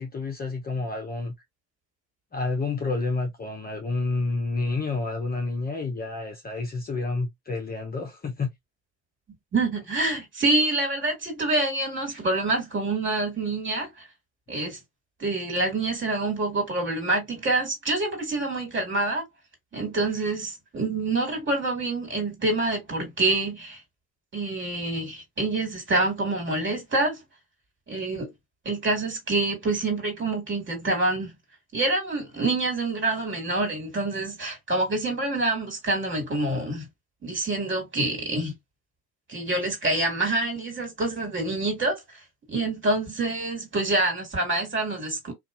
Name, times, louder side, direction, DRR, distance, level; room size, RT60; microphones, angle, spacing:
voice 1, 0.0-1.3 2.3-8.5, left 3 dB, 20° left, 0.7 m, -29 dB
voice 2, 9.5-14.1 14.5-14.8 15.2-19.3 19.7-23.8 24.3-27.2 27.9-28.3 28.7-31.3 31.7-36.9 37.2-38.6 39.3-42.0 42.5-45.3, right 2 dB, 30° right, 2.0 m, -26 dB
2.7 x 2.4 x 2.5 m
hypercardioid pair, 70°, 42 cm